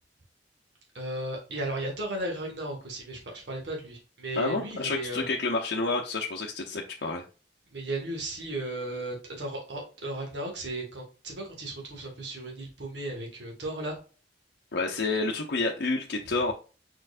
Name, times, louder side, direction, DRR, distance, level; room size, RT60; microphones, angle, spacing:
voice 1, 0.9-5.2 7.7-14.0, right 1 dB, 70° right, 0 dB, 1.7 m, -35 dB
voice 2, 4.4-7.2 14.7-16.5, left 3 dB, 60° left, 0 dB, 0.7 m, -29 dB
4.6 x 4.3 x 2.5 m, 0.35 s
head